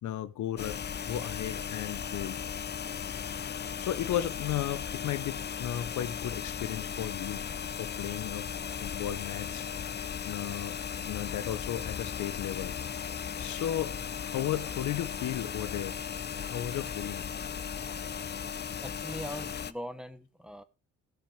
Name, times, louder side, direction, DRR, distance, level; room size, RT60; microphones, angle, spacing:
voice 1, 0.0-2.4 3.5-7.4 7.8-8.5 8.8-10.0 10.3-12.7 13.4-16.0 16.5-17.2, left 12 dB, 75° left, 0.9 m, -35 dB
sound 1, 0.6-19.7, left 7 dB, 35° left, 0.7 m, -37 dB
voice 2, 18.8-20.6, equal, 5° right, 1.2 m, -41 dB
15.0 x 5.8 x 5.0 m
cardioid pair, 90°, 30 cm